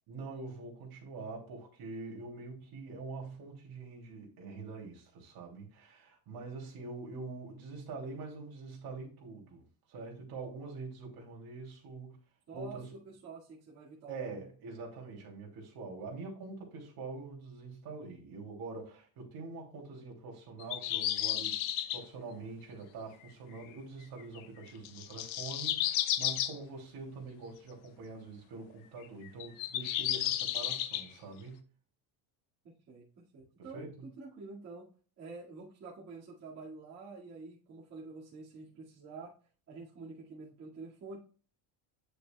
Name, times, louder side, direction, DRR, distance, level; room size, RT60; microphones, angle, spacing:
voice 1, 0.1-12.2 12.5-12.9 14.1-21.6 21.9-31.6 33.6-34.1, right 3 dB, 50° right, 2.9 m, -45 dB
voice 2, 12.5-14.1 32.6-34.9 35.2-39.3 39.7-41.2, right 3 dB, 35° right, 2.1 m, -48 dB
sound 1, 20.6-22.0 24.2-24.4 24.9-26.5 29.0-31.0, left 12 dB, 85° left, 0.9 m, -32 dB
8.9 x 6.6 x 2.3 m
cardioid pair, 160°, 47 cm